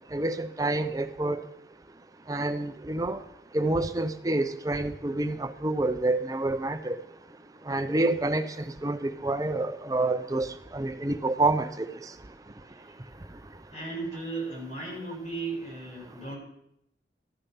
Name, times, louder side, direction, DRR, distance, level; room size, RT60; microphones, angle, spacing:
voice 1, 0.1-1.4 2.3-3.2 3.5-7.0 7.7-8.5 8.8-10.5 10.7-11.9, right 2 dB, 20° right, 10 dB, 0.5 m, -27 dB
voice 2, 12.7-13.0 13.7-16.4, right 3 dB, 45° left, -4 dB, 5.1 m, -36 dB
13.0 x 6.9 x 5.7 m, 0.75 s
head